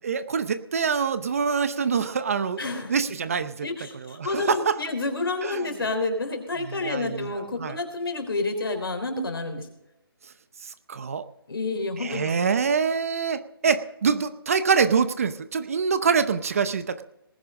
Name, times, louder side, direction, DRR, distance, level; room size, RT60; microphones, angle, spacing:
voice 1, 0.0-2.6 2.9-3.7 3.9-4.8 5.4-5.6 6.6-7.8 10.6-11.3 12.0-17.0, right 6 dB, 35° right, 13 dB, 0.7 m, -25 dB
voice 2, 2.6-2.9 3.6-9.7 11.5-12.3, left 2 dB, 65° left, 7 dB, 3.5 m, -29 dB
19.0 x 10.5 x 3.7 m, 0.85 s
hypercardioid pair, 165°, 13 cm